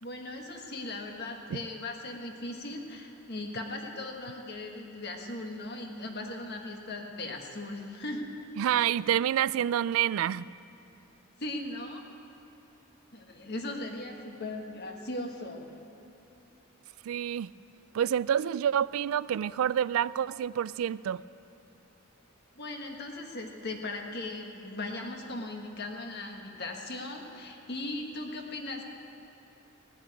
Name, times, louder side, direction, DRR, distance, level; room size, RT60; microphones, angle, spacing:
voice 1, 0.0-8.3 11.4-12.0 13.1-15.6 22.5-28.9, left 2 dB, 50° left, 2 dB, 1.5 m, -38 dB
voice 2, 8.6-10.5 17.0-17.5 17.9-21.2, right 9 dB, 80° right, 18 dB, 0.3 m, -28 dB
17.5 x 7.7 x 9.3 m, 2.9 s
head